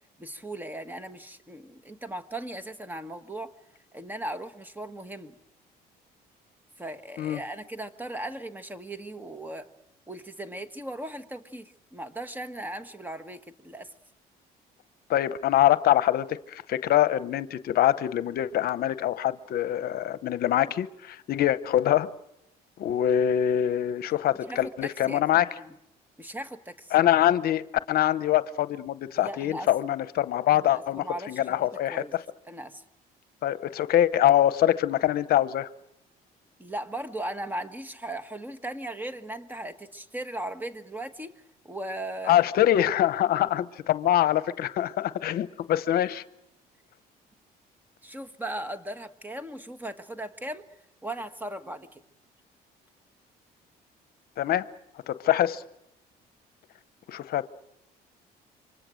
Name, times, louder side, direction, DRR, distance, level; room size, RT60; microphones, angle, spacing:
voice 1, 0.2-3.5 3.9-5.3 6.8-9.7 10.1-13.9 24.5-25.2 25.5-25.8 26.2-26.9 29.2-29.7 30.5-32.1 32.5-32.8 36.6-41.3 41.6-42.5 48.0-50.7 51.0-52.0, right 1 dB, 10° right, 1.5 m, -37 dB
voice 2, 15.1-22.1 22.8-25.5 26.9-32.0 33.4-35.7 42.3-46.2 54.4-54.7 55.1-55.6 57.1-57.5, left 12 dB, 65° left, 0.9 m, -24 dB
27.5 x 24.5 x 6.4 m
cardioid pair, 110°, 17 cm